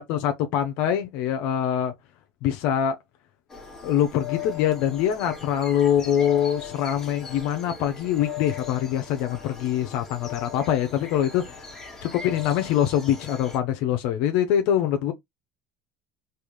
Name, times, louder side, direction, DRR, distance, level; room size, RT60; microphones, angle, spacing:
voice 1, 0.1-1.9 2.4-3.0 3.8-11.4 12.0-15.1, left 10 dB, 70° left, 0.6 m, -24 dB
sound 1, 3.5-13.6, left 7 dB, 20° left, 1.4 m, -39 dB
3.4 x 2.4 x 3.0 m
supercardioid pair, 115°, 2 cm